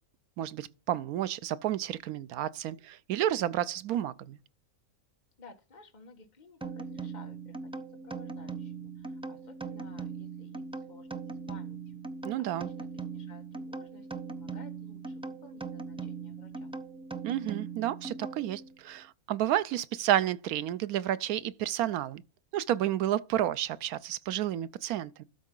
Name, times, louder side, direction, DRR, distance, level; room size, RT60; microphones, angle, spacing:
voice 1, 0.4-4.4 12.2-12.7 17.2-22.2 22.5-25.2, right 12 dB, 85° right, 1.1 m, -31 dB
voice 2, 5.4-12.1 12.4-16.8, left 3 dB, 30° left, 1.5 m, -55 dB
sound 1, 6.6-18.8, right 4 dB, 10° right, 0.3 m, -40 dB
12.5 x 4.7 x 3.8 m
omnidirectional pair, 1.5 m